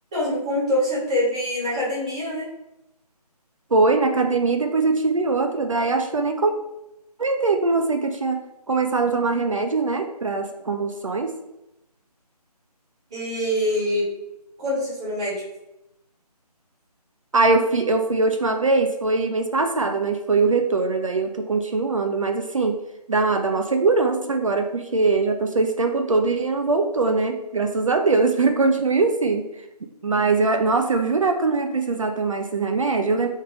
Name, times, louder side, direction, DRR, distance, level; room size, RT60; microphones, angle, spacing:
voice 1, 0.1-2.5 13.1-14.1 14.6-15.4, left 1 dB, 10° right, -8 dB, 0.6 m, -24 dB
voice 2, 3.7-6.5 7.2-8.4 8.7-11.3 17.3-22.8 23.1-29.7 30.0-33.3, right 3 dB, 55° right, 5 dB, 0.5 m, -22 dB
3.3 x 3.1 x 3.8 m, 0.90 s
figure-of-eight pair, 160°, 21 cm